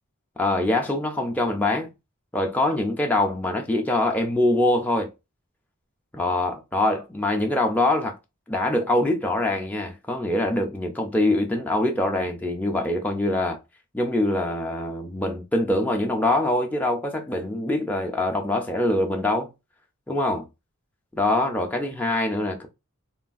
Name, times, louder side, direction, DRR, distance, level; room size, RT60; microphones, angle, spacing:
voice 1, 0.4-1.9 2.3-5.1 6.1-8.2 8.5-13.6 13.9-19.5 20.1-20.5 21.1-22.7, left 1 dB, 10° left, 0.4 m, -24 dB
3.1 x 2.4 x 2.4 m
head